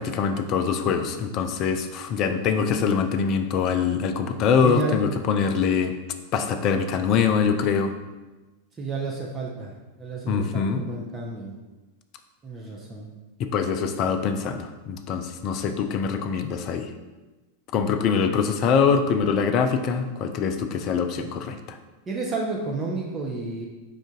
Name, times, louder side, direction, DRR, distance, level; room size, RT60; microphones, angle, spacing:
voice 1, 0.0-6.0 6.3-7.9 10.3-10.8 13.4-16.9 17.7-21.8, left 6 dB, 40° left, 8 dB, 0.4 m, -24 dB
voice 2, 4.6-5.1 8.8-9.7 10.0-11.5 12.4-13.1 22.1-23.7, right 3 dB, 20° right, -2 dB, 0.6 m, -31 dB
5.0 x 2.5 x 3.7 m, 1.2 s
figure-of-eight pair, 90°, 0 cm